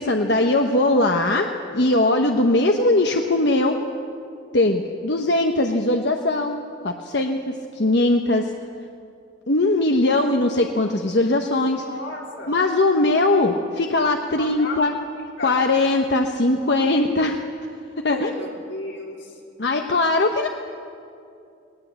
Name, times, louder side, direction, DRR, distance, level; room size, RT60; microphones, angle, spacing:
voice 1, 0.0-3.8 4.5-8.5 9.5-11.8 12.5-14.9 15.4-17.4 18.0-18.3 19.6-20.5, left 2 dB, 65° left, 3 dB, 1.0 m, -20 dB
voice 2, 11.9-12.5 14.4-14.9 15.2-15.8 18.0-19.4, left 2 dB, 90° left, -1 dB, 3.9 m, -34 dB
19.5 x 19.0 x 8.2 m, 2.5 s
head